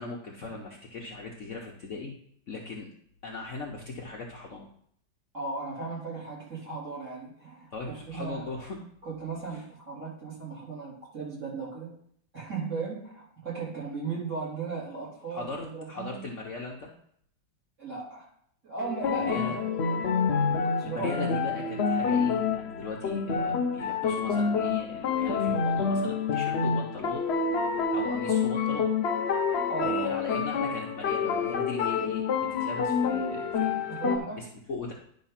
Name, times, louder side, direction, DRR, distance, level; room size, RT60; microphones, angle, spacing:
voice 1, 0.0-2.1 2.5-2.9 3.2-4.7 7.7-8.8 9.5-9.6 15.3-16.9 19.0-19.6 20.8-27.3 27.6-28.9 29.4-32.2 32.5-33.8 34.2-34.9, left 3 dB, 50° left, -1 dB, 1.0 m, -39 dB
voice 2, 5.3-8.4 9.0-11.9 12.3-16.2 17.8-18.3 18.6-20.0 20.8-21.4 29.7-30.1 33.9-34.5, right 4 dB, 40° right, -7 dB, 3.9 m, -36 dB
sound 1, 18.8-34.2, left 5 dB, 90° left, 0.5 m, -28 dB
10.5 x 3.6 x 5.7 m, 0.64 s
omnidirectional pair, 2.0 m